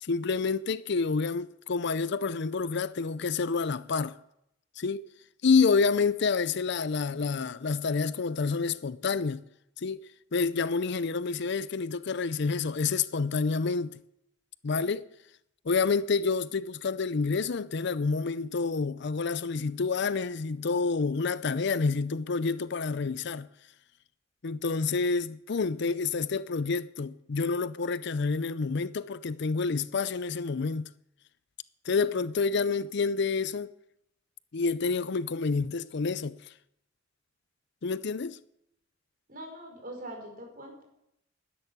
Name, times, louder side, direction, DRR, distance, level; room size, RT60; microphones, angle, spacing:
voice 1, 0.0-4.2 4.8-5.0 5.4-9.4 9.8-10.0 10.3-14.0 14.6-15.0 15.7-23.5 24.4-30.9 31.9-33.7 34.5-36.4 37.8-38.4, left 4 dB, 60° left, 0.5 m, -28 dB
voice 2, 39.3-40.8, right 1 dB, 50° right, 4.8 m, -42 dB
12.5 x 10.5 x 8.6 m
head